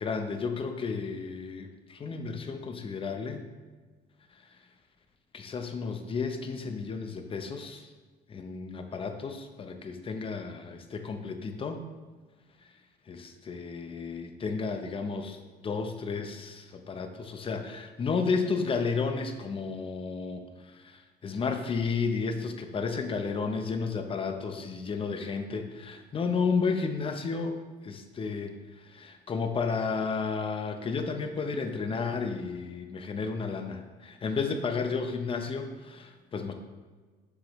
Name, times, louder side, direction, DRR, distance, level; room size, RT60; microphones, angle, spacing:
voice 1, 0.0-3.4 5.3-7.9 8.3-11.8 13.1-27.6 27.8-36.5, left 5 dB, 30° left, 6 dB, 0.8 m, -32 dB
7.5 x 6.6 x 3.2 m, 1.4 s
cardioid pair, 110°, 17 cm